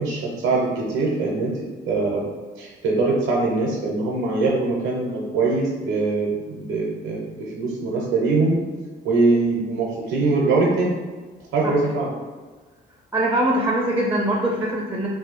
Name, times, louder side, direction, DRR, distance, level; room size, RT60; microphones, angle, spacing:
voice 1, 0.0-1.5 1.8-2.3 2.6-8.6 9.0-10.9 11.5-12.1, right 3 dB, 85° right, -3 dB, 0.6 m, -22 dB
voice 2, 13.1-15.1, right 1 dB, 10° right, -2 dB, 0.5 m, -22 dB
2.6 x 2.3 x 3.9 m, 1.4 s
cardioid pair, 90°, 20 cm